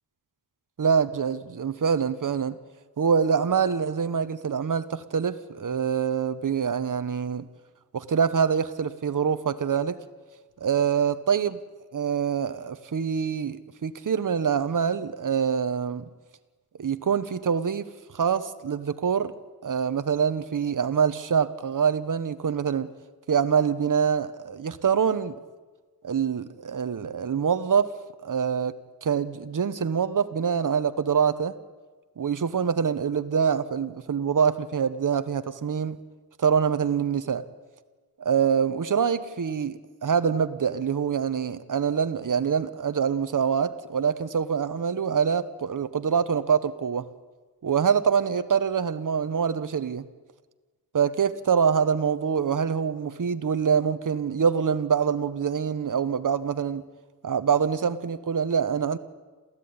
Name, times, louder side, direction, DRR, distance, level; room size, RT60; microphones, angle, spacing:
voice 1, 0.8-2.6 3.0-7.5 7.9-10.0 10.6-11.6 11.9-16.1 16.8-19.3 19.6-22.9 23.3-25.3 26.0-27.9 28.2-28.8 29.0-31.5 32.2-36.0 36.4-37.5 38.2-47.1 47.6-50.1 50.9-56.8 57.2-59.0, right 7 dB, 55° right, 1.4 m, -25 dB
28.0 x 15.0 x 9.8 m
wide cardioid pair, 140°, 38 cm